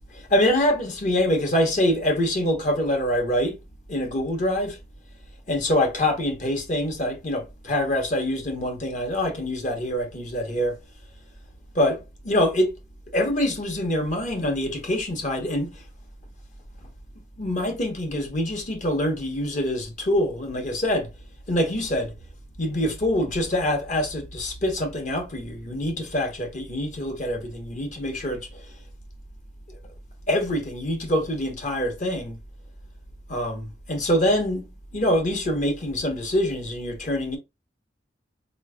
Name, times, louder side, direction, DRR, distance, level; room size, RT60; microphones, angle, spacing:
voice 1, 0.1-3.6 3.9-4.8 5.5-10.8 11.7-12.7 13.1-15.8 17.4-21.1 21.5-22.1 22.6-28.5 30.3-32.4 33.3-34.6 34.9-37.4, left 1 dB, 45° left, 1.0 m, -25 dB
4.2 x 3.1 x 2.2 m
head